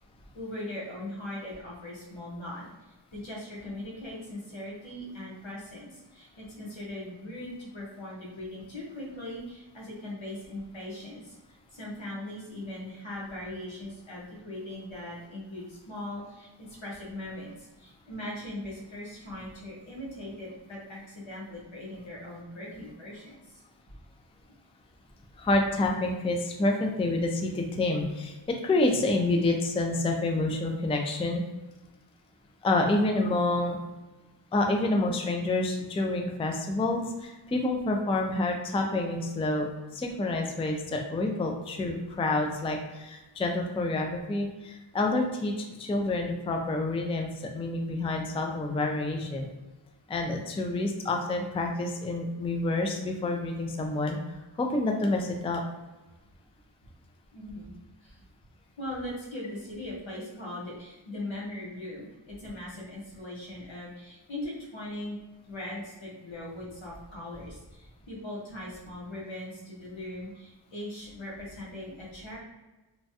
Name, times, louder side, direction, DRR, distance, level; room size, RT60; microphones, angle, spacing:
voice 1, 0.3-2.7 3.1-11.4 11.7-23.6 57.3-57.7 58.0-58.2 58.8-65.2 65.4-72.4, left 1 dB, 80° left, -5 dB, 1.1 m, -40 dB
voice 2, 25.4-31.4 32.6-33.8 34.5-49.5 50.1-54.2 54.6-55.6, left 2 dB, 15° left, 2 dB, 0.3 m, -28 dB
3.0 x 2.3 x 2.7 m, 1.1 s
wide cardioid pair, 60°, 46 cm